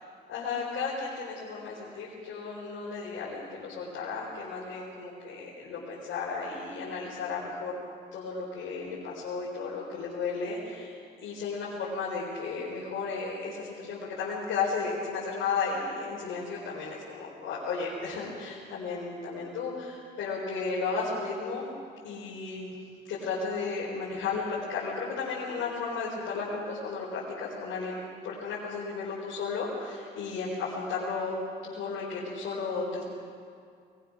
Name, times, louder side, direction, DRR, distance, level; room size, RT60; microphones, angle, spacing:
voice 1, 0.3-7.8 8.1-21.7 22.0-22.8 23.1-31.3 31.6-33.1, left 4 dB, 80° left, -6 dB, 4.6 m, -34 dB
21.5 x 21.0 x 6.4 m, 2.3 s
cardioid pair, 90°, 20 cm